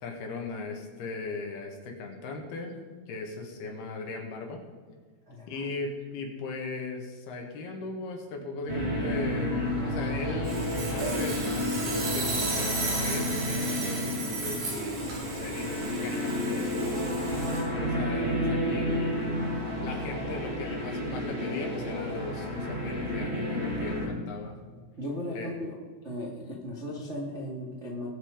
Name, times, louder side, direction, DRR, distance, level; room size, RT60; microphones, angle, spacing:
voice 1, 0.0-2.8 3.1-4.6 5.5-15.0 15.3-17.3 17.7-19.4 19.8-24.6 25.4-25.5 26.5-26.6, left 3 dB, 70° left, 2 dB, 3.6 m, -38 dB
voice 2, 5.3-5.6 25.0-25.7 26.0-28.1, left 1 dB, 35° right, -4 dB, 1.1 m, -36 dB
sound 1, 8.7-24.1, left 1 dB, 15° right, 5.0 m, -31 dB
Sawing, 10.4-17.6, right 2 dB, 80° right, 6.0 m, -33 dB
21.0 x 7.8 x 5.1 m, 1.5 s
omnidirectional pair, 4.8 m